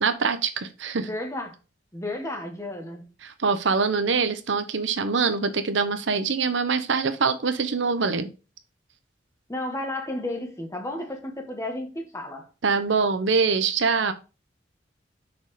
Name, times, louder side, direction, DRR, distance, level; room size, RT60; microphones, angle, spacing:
voice 1, 0.0-1.1 3.2-8.3 12.6-14.1, right 5 dB, 85° right, 0.8 m, -24 dB
voice 2, 1.0-1.5 1.9-3.1 9.5-12.5, left 1 dB, 15° left, 1.3 m, -32 dB
6.1 x 4.2 x 4.7 m
head